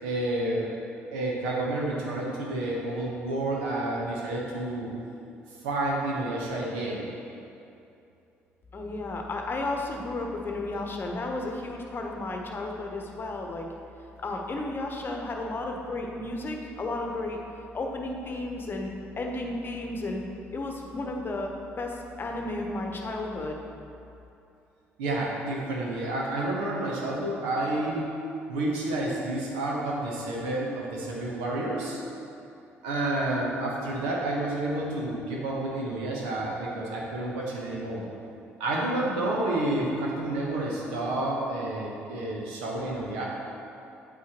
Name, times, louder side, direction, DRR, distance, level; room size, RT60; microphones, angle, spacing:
voice 1, 0.0-0.7 1.1-4.9 5.6-7.1 25.0-28.1 28.5-32.0 32.8-38.0 38.6-43.3, right 2 dB, 70° right, -3 dB, 1.3 m, -30 dB
voice 2, 8.7-13.7 14.2-17.4 17.7-18.9 19.2-20.2 20.5-23.6, left 2 dB, 30° left, 2 dB, 1.1 m, -33 dB
8.6 x 8.4 x 3.1 m, 2.7 s
figure-of-eight pair, 50°, 7 cm